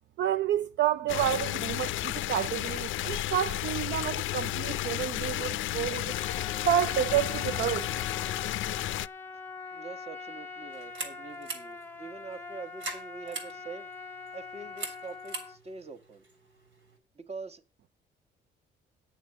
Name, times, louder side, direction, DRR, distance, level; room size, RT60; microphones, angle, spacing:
voice 1, 0.2-6.2 6.6-7.9, right 10 dB, 65° right, 0.5 m, -29 dB
sound 1, 1.1-9.1, left 14 dB, 80° left, 0.4 m, -32 dB
Trumpet, 6.1-15.6, left 4 dB, 10° left, 1.0 m, -43 dB
voice 2, 9.7-13.9 14.3-16.2 17.1-17.9, right 4 dB, 30° right, 1.2 m, -44 dB
sound 2, 10.7-17.0, right 2 dB, 85° right, 3.4 m, -44 dB
9.3 x 6.8 x 7.3 m
cardioid pair, 90°, 20 cm